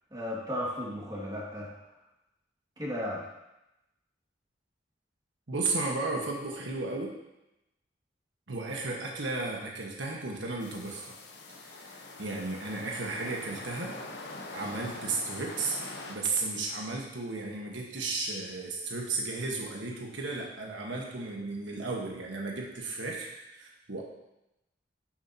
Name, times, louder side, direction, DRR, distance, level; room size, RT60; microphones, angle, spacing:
voice 1, 0.1-1.7 2.8-3.2, left 1 dB, 20° right, -5 dB, 2.1 m, -35 dB
voice 2, 5.5-7.2 8.5-11.1 11.6-14.0 14.5-15.8 16.1-24.0, right 3 dB, 85° right, -1 dB, 1.4 m, -34 dB
sound 1, 10.6-16.1, left 2 dB, 65° left, 1.1 m, -44 dB
11.5 x 7.1 x 2.9 m, 0.93 s
head